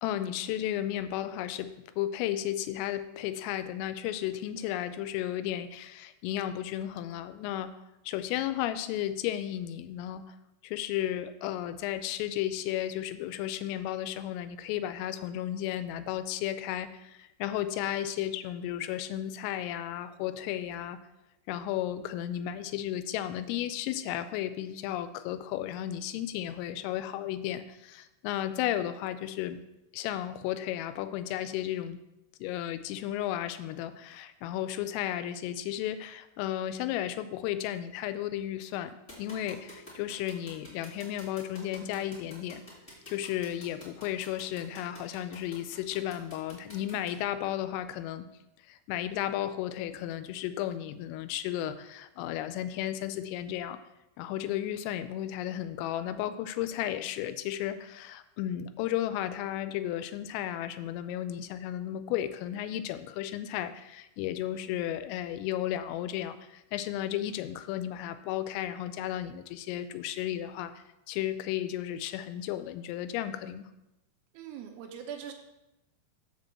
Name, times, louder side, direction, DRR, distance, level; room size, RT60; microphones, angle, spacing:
voice 1, 0.0-1.7 2.0-7.7 8.1-10.4 10.6-21.0 21.5-29.6 29.9-32.0 32.4-42.6 43.1-48.3 48.7-53.8 54.2-73.7, left 12 dB, 85° left, 12 dB, 3.2 m, -34 dB
sound 1, 39.1-47.1, left 1 dB, 20° left, 2.0 m, -48 dB
voice 2, 74.3-75.3, right 8 dB, 80° right, 4 dB, 3.0 m, -41 dB
7.0 x 5.3 x 7.2 m, 0.92 s
omnidirectional pair, 5.8 m